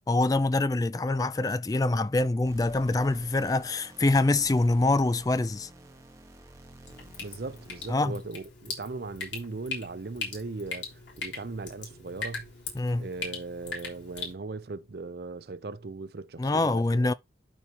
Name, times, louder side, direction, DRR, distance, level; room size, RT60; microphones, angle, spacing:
voice 1, 0.1-5.7 7.9-8.1 12.7-13.1 16.4-17.1, left 2 dB, 20° left, 0.3 m, -25 dB
sound 1, 2.4-8.2, right 1 dB, 15° right, 1.3 m, -51 dB
Drip, 6.9-14.3, left 4 dB, 90° left, 3.6 m, -40 dB
voice 2, 7.2-10.9 11.2-12.5 13.0-17.1, right 3 dB, 60° right, 0.6 m, -38 dB
12.0 x 4.5 x 2.9 m
head